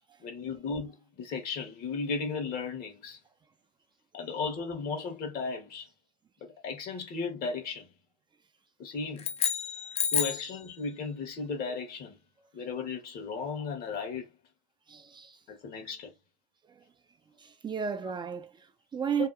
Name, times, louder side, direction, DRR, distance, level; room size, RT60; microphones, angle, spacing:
voice 1, 0.2-3.2 4.1-5.9 6.4-7.9 8.8-9.3 10.1-12.2 12.5-14.3 15.5-16.1 19.2-19.3, left 4 dB, 60° left, 1.1 m, -35 dB
sound 1, 9.2-10.6, left 7 dB, 35° left, 0.5 m, -30 dB
voice 2, 14.9-15.4 16.7-16.8 17.4-19.3, right 7 dB, 25° right, 0.4 m, -34 dB
2.8 x 2.2 x 2.4 m
hypercardioid pair, 80°, 18 cm